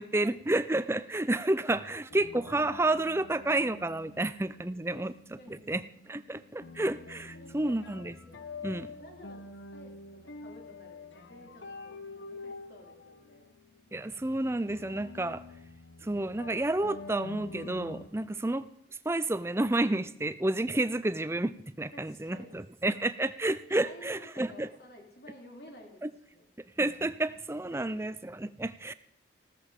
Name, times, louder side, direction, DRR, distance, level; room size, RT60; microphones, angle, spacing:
voice 1, 0.0-5.1 5.7-8.1 8.6-8.9 13.9-15.4 16.0-18.7 19.0-24.7 26.0-26.1 26.8-28.9, right 2 dB, 15° right, 14 dB, 0.5 m, -30 dB
voice 2, 1.1-1.4 1.9-2.0 4.9-5.1 5.4-5.7 7.3-7.9 9.0-9.9 10.2-13.5 21.9-22.6 23.8-26.0 26.3-26.5 27.7-28.0, left 1 dB, 55° left, 1 dB, 3.6 m, -52 dB
sound 1, 2.1-18.1, left 3 dB, 80° left, 1.1 m, -47 dB
15.5 x 13.5 x 5.1 m, 0.75 s
head